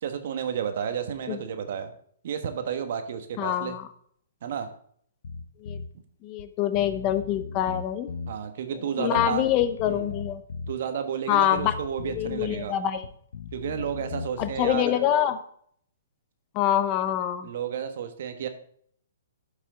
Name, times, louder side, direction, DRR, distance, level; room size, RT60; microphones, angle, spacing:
voice 1, 0.0-1.9 2.2-3.8 4.4-4.7 8.3-9.5 9.9-10.1 10.7-12.8 13.5-15.0 17.4-18.5, right 8 dB, 60° right, 8 dB, 1.2 m, -31 dB
voice 2, 3.4-3.9 5.6-5.8 6.2-8.1 9.0-10.4 11.3-11.7 12.2-13.0 14.4-15.4 16.5-17.5, left 11 dB, 35° left, 11 dB, 0.8 m, -25 dB
Bass guitar, 5.2-5.9 6.4-6.5 6.7-8.4 9.2-10.8 11.5-12.7 13.0-14.8, left 5 dB, 70° left, 0.9 m, -38 dB
11.5 x 5.6 x 3.8 m, 0.63 s
hypercardioid pair, 135°, 0 cm